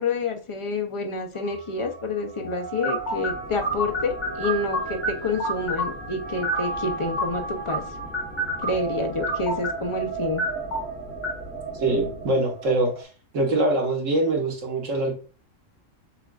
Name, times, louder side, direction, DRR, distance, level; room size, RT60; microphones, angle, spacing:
voice 1, 0.0-7.8 8.6-10.4, left 3 dB, 40° left, 4 dB, 0.5 m, -28 dB
sound 1, 1.3-13.0, right 4 dB, 15° right, 1.1 m, -35 dB
sound 2, 2.8-12.3, equal, 70° left, 1.5 m, -31 dB
voice 2, 11.8-13.1 13.3-15.1, right 2 dB, 75° right, 1 dB, 1.6 m, -23 dB
6.5 x 2.5 x 2.3 m, 0.37 s
omnidirectional pair, 1.3 m